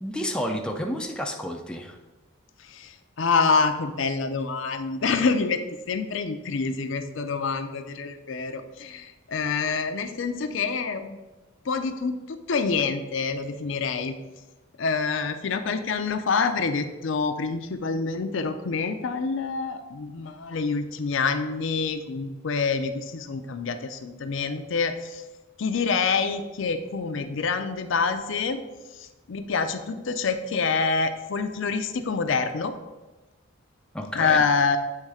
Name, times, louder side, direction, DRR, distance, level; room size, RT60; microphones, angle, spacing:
voice 1, 0.0-2.0 33.9-34.4, equal, 5° left, 2 dB, 0.4 m, -30 dB
voice 2, 3.2-5.6 5.9-11.2 11.7-14.2 14.8-25.2 25.6-28.6 29.0-32.7 34.1-34.8, left 4 dB, 65° left, 8 dB, 0.5 m, -26 dB
7.7 x 3.2 x 4.8 m, 1.1 s
head